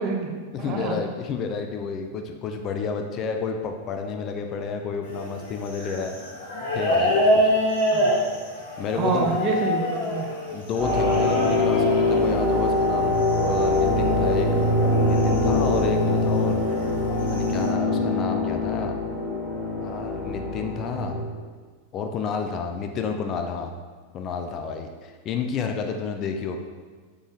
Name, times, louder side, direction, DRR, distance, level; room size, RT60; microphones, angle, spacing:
voice 1, 0.0-1.0 7.9-8.2 8.9-10.3, right 4 dB, 35° right, 2 dB, 0.6 m, -27 dB
voice 2, 0.5-6.2 6.7-7.5 8.8-9.4 10.5-14.6 15.0-16.6 17.2-19.0 19.8-21.2 21.9-23.7 24.1-26.6, left 5 dB, 35° left, 4 dB, 0.4 m, -30 dB
sound 1, 5.0-16.3 17.0-17.7, equal, 60° left, 1.3 m, -27 dB
sound 2, 10.8-21.2, left 2 dB, 5° right, 1.2 m, -23 dB
3.8 x 3.7 x 3.0 m, 1.5 s
figure-of-eight pair, 90°, 0 cm